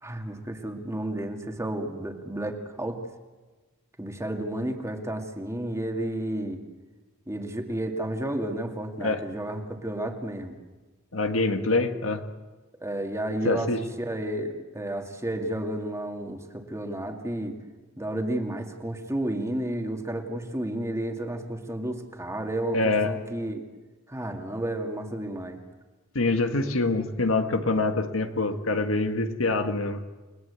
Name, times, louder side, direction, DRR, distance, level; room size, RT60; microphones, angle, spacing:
voice 1, 0.0-3.0 4.0-6.6 7.3-10.6 12.8-17.6 18.0-23.6 24.1-25.6, right 1 dB, 15° right, 3 dB, 2.3 m, -32 dB
voice 2, 11.1-12.2 13.4-13.8 22.7-23.1 26.1-30.0, left 3 dB, 80° left, 7 dB, 1.7 m, -25 dB
30.0 x 20.5 x 8.3 m, 1.3 s
head